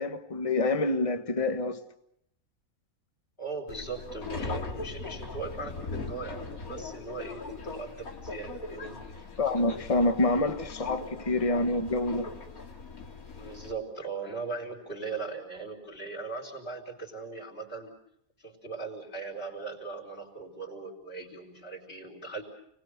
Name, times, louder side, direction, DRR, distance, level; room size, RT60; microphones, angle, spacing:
voice 1, 0.0-1.8 9.4-12.4, left 2 dB, 25° left, 1.4 m, -27 dB
voice 2, 3.4-9.3 13.4-17.9 18.4-22.4, right 4 dB, 45° left, 4.8 m, -39 dB
Subway metro underground, 3.7-13.7, left 3 dB, 90° left, 2.8 m, -40 dB
30.0 x 20.0 x 6.8 m
omnidirectional pair, 1.5 m